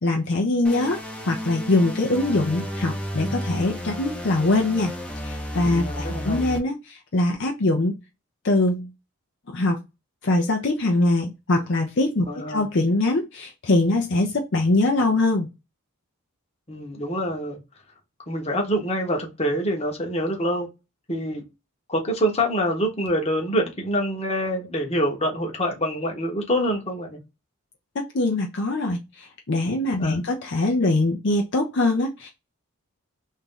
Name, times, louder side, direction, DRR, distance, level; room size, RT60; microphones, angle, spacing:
voice 1, 0.0-1.0 1.2-4.9 5.2-8.0 8.4-8.9 9.5-9.8 10.2-15.5 28.1-32.3, left 2 dB, 55° left, 0.6 m, -23 dB
sound 1, 0.6-6.6, equal, 5° left, 0.6 m, -32 dB
voice 2, 5.8-6.5 12.3-12.6 16.7-17.6 18.3-20.7 21.1-21.4 21.9-27.2 30.0-30.2, equal, 25° left, 1.0 m, -26 dB
3.0 x 2.6 x 3.7 m
head